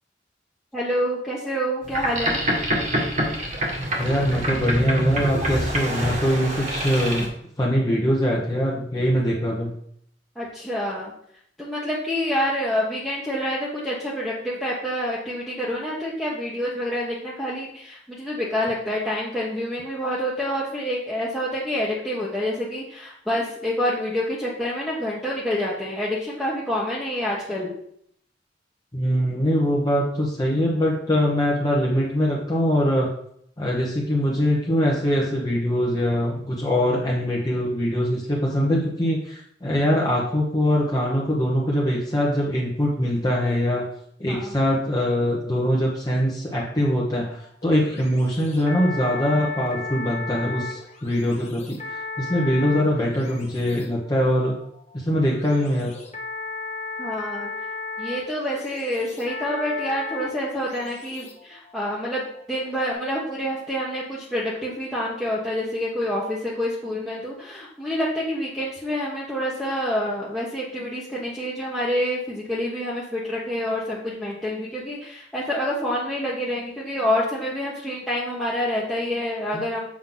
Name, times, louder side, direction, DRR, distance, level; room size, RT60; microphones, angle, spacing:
voice 1, 0.7-2.4 10.3-11.1 11.6-27.7 44.3-44.5 57.0-57.5 58.0-79.9, equal, ahead, -8 dB, 1.2 m, -27 dB
Boat Water vehicle, 1.8-7.3, equal, 45° right, 1.9 m, -26 dB
voice 2, 4.0-7.3 7.6-9.7 28.9-33.1 33.6-43.8 44.2-54.5 54.9-55.9, equal, 20° left, -4 dB, 1.2 m, -23 dB
sound 1, 47.1-62.9, left 3 dB, 40° left, 1.4 m, -36 dB
7.4 x 5.7 x 3.9 m, 0.68 s
head